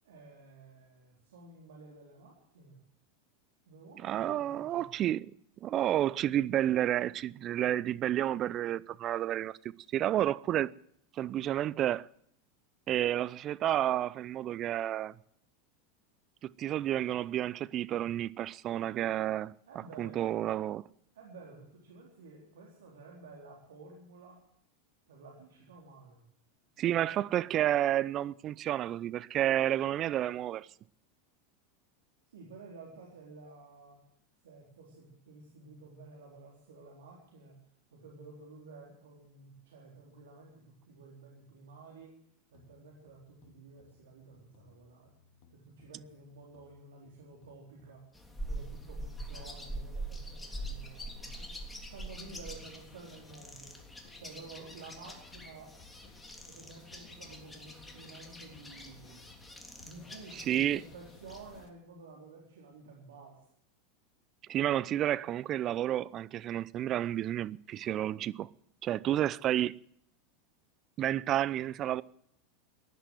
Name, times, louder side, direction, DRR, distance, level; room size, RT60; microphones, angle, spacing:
voice 1, 0.0-2.8 3.7-4.9 19.7-20.3 21.1-24.4 25.1-26.2 27.0-27.2 32.3-34.0 34.4-37.5 37.9-42.1 42.5-45.1 45.5-48.0 48.5-51.6 51.9-53.7 54.2-55.7 56.5-59.2 59.8-63.4, right 3 dB, 80° right, 4.0 m, -52 dB
voice 2, 4.0-5.3 5.6-10.7 11.1-12.1 12.9-15.1 16.4-19.5 20.0-20.9 26.8-30.7 60.3-60.8 64.5-68.5 68.8-69.7 71.0-72.0, right 12 dB, 40° right, 0.6 m, -30 dB
sound 1, 42.5-61.7, left 7 dB, 55° left, 2.5 m, -62 dB
sound 2, 48.1-61.7, right 1 dB, 10° left, 3.3 m, -44 dB
16.0 x 11.0 x 7.8 m
hypercardioid pair, 95°, 0 cm